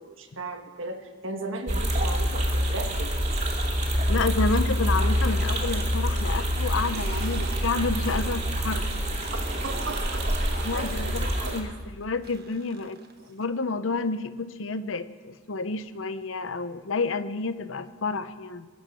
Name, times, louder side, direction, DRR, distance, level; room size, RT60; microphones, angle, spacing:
voice 1, 0.0-3.1 5.3-5.4 9.6-11.6, right 2 dB, 75° right, 5 dB, 1.5 m, -37 dB
sound 1, 1.7-11.6, equal, 35° right, 2.6 m, -26 dB
voice 2, 4.1-8.9 10.6-13.0 13.3-18.7, left 3 dB, 75° left, 12 dB, 0.8 m, -30 dB
sound 2, 6.5-8.4 8.7-13.4, right 3 dB, 50° right, 1.3 m, -42 dB
22.0 x 8.8 x 5.7 m, 1.4 s
head